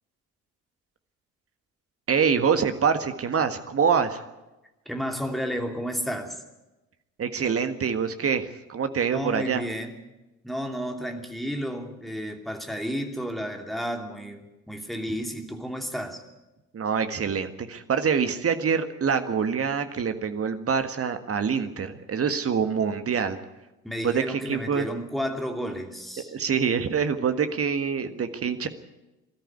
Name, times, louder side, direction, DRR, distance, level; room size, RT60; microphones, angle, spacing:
voice 1, 2.1-4.2 7.2-9.6 16.7-23.4 24.0-24.9 26.3-28.7, right 6 dB, 35° right, 9 dB, 1.7 m, -25 dB
voice 2, 4.9-6.4 9.1-10.0 10.4-16.2 23.8-26.3, equal, ahead, 4 dB, 2.9 m, -32 dB
20.5 x 13.5 x 9.5 m, 1.1 s
figure-of-eight pair, 45°, 42 cm